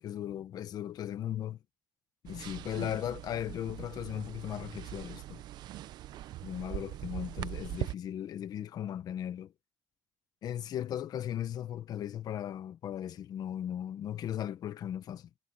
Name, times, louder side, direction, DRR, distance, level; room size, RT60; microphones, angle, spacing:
voice 1, 0.0-1.6 2.2-5.4 6.4-9.5 10.4-15.4, left 10 dB, 65° left, 1.2 m, -37 dB
sound 1, 2.3-7.9, right 14 dB, 75° right, 0.6 m, -41 dB
cardioid pair, 110°, 7 cm